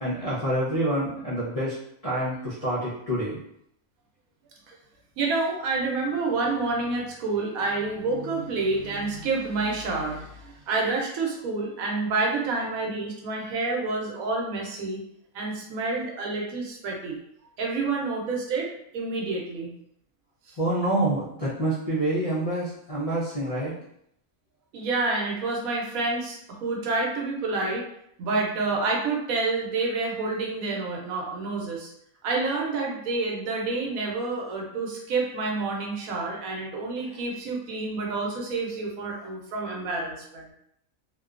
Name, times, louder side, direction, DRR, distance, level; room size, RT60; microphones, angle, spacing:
voice 1, 0.0-1.7 2.0-3.4 20.6-23.7, right 1 dB, 70° left, -7 dB, 0.3 m, -27 dB
voice 2, 5.2-15.0 15.3-17.2 17.6-19.7 24.7-27.8 28.2-31.9 32.2-40.5, right 3 dB, 85° right, -1 dB, 1.1 m, -28 dB
2.7 x 2.2 x 2.4 m, 0.74 s
omnidirectional pair, 1.4 m